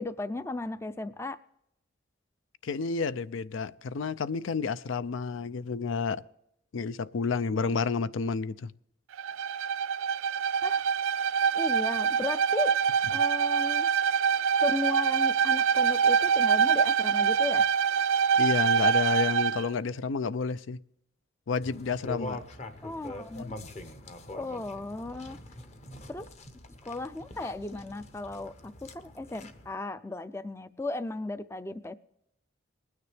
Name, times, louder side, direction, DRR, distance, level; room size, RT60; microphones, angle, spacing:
voice 1, 0.0-1.4 10.6-10.8 11.5-12.7 13.1-13.9 14.6-17.7 22.8-23.5 24.3-25.4 26.1-26.3 26.8-32.0, left 2 dB, 15° left, 0.4 m, -35 dB
voice 2, 2.6-6.2 6.7-8.7 18.4-20.8 21.5-22.4 23.3-23.5, left 5 dB, 80° left, 0.4 m, -30 dB
Bowed string instrument, 9.1-19.6, right 7 dB, 90° right, 0.4 m, -25 dB
sound 1, 21.6-29.7, left 1 dB, 35° left, 0.8 m, -44 dB
20.5 x 9.6 x 3.4 m
head